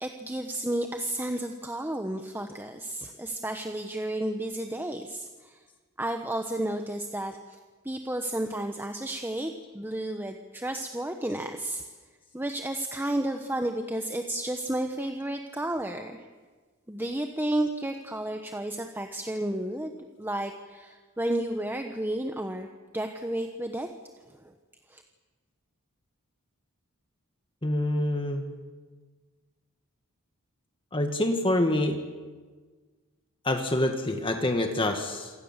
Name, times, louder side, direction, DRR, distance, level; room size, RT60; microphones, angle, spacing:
voice 1, 0.0-5.6 6.0-7.4 7.8-11.8 12.3-16.3 16.9-19.9 20.2-22.7 22.9-23.9 24.3-24.4 24.9-25.0, right 1 dB, 10° right, 5 dB, 1.2 m, -32 dB
voice 2, 27.6-28.4 30.9-32.0 33.4-35.3, left 1 dB, 25° left, 5 dB, 1.8 m, -26 dB
27.5 x 25.5 x 7.4 m, 1.4 s
head